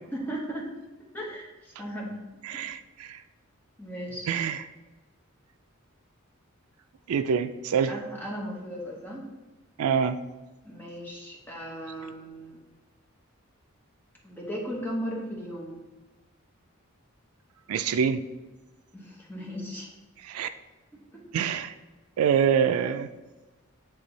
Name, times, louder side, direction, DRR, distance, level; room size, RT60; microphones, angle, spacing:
voice 1, 0.1-0.7 1.1-2.2 2.5-2.6 3.8-4.3 7.9-9.3 10.6-12.6 14.2-15.8 18.9-19.9 20.9-21.2, equal, 10° left, -3 dB, 1.1 m, -36 dB
voice 2, 2.4-3.2 4.3-4.6 7.1-7.9 9.8-10.2 17.7-18.2 20.2-20.5 21.3-21.7 22.2-23.1, right 7 dB, 80° right, 10 dB, 0.4 m, -25 dB
8.7 x 3.3 x 4.0 m, 1.2 s
head